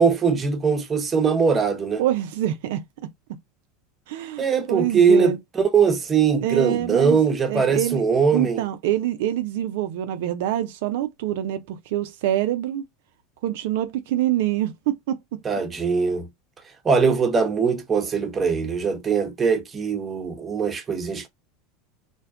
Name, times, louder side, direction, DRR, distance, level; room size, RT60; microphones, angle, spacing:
voice 1, 0.0-2.0 4.4-8.6 15.4-16.3 16.8-21.3, right 5 dB, 25° right, 0.7 m, -21 dB
voice 2, 2.0-2.8 4.1-5.4 6.4-7.2 7.5-8.0 8.3-12.8 13.4-15.2, right 12 dB, 75° right, 0.3 m, -25 dB
2.6 x 2.1 x 2.3 m
supercardioid pair, 110°, 0 cm